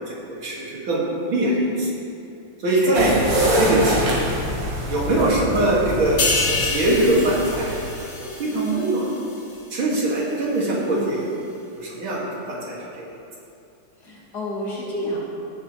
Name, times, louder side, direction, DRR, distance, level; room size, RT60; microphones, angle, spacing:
voice 1, 0.0-2.0 2.6-3.2 3.5-4.4 4.9-6.3 6.6-7.7 8.2-9.1 9.7-11.2 11.7-13.1, right 1 dB, 65° right, -5 dB, 2.7 m, -22 dB
voice 2, 2.6-3.0 10.9-11.2 14.0-15.2, left 1 dB, 50° left, -6 dB, 2.4 m, -30 dB
sound 1, 2.9-7.9, equal, 80° right, 2.8 m, -25 dB
sound 2, 6.2-9.7 10.1-10.3, left 3 dB, 70° left, 2.5 m, -27 dB
16.0 x 7.3 x 3.1 m, 2.6 s
omnidirectional pair, 2.4 m